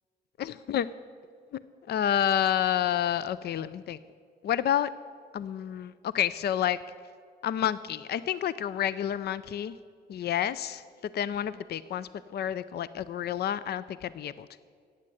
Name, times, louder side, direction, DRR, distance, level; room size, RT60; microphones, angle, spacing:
voice 1, 0.4-0.9 1.9-4.0 4.4-4.9 5.3-6.8 7.4-9.7 10.1-10.8 11.1-14.6, left 10 dB, 65° left, 16 dB, 0.4 m, -29 dB
15.0 x 9.5 x 7.8 m, 2.1 s
cardioid pair, 95°, 18 cm